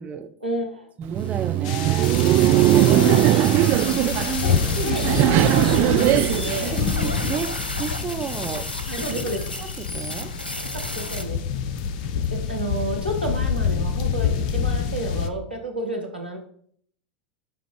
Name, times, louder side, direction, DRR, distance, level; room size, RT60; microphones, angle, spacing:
voice 1, 0.4-0.9 2.9-3.5 4.4-6.8 8.9-9.4 10.7-11.4 12.3-16.4, equal, 90° right, 2 dB, 1.8 m, -30 dB
voice 2, 1.0-2.1 2.7-3.6 4.0-4.6 6.7-8.7 9.0-9.1 9.6-10.3, right 6 dB, 25° right, 8 dB, 0.9 m, -32 dB
Laughter, 1.0-7.3, right 14 dB, 40° right, 0.4 m, -20 dB
sound 1, 1.2-11.2, left 1 dB, 85° left, 0.9 m, -33 dB
sound 2, 1.6-15.3, left 6 dB, 55° left, 0.8 m, -27 dB
11.5 x 4.0 x 5.1 m, 0.62 s
figure-of-eight pair, 85°, 5 cm